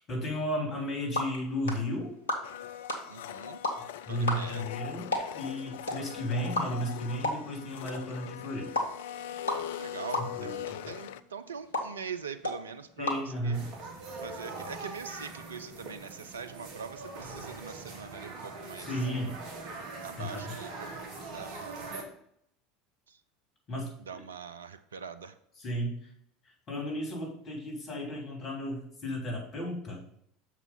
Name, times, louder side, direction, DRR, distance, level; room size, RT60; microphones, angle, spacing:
voice 1, 0.1-2.1 4.1-8.7 10.2-10.8 13.0-13.7 18.8-19.4 20.2-20.5 23.7-24.2 25.6-26.1 26.7-30.0, equal, 40° left, 0 dB, 3.1 m, -34 dB
sound 1, 0.7-14.0, left 1 dB, 80° left, 1.2 m, -37 dB
Domestic sounds home sounds, 2.4-11.2, left 11 dB, 65° left, 0.3 m, -41 dB
voice 2, 3.1-3.6 4.1-4.7 9.7-13.1 13.4-13.6 14.2-18.9 20.0-20.9 21.3-21.9 23.1-23.2 24.0-25.3, right 6 dB, 80° right, 10 dB, 0.4 m, -43 dB
sound 2, 13.5-22.0, right 3 dB, 55° right, 1.5 m, -42 dB
6.6 x 4.9 x 5.4 m, 0.70 s
figure-of-eight pair, 70°, 0 cm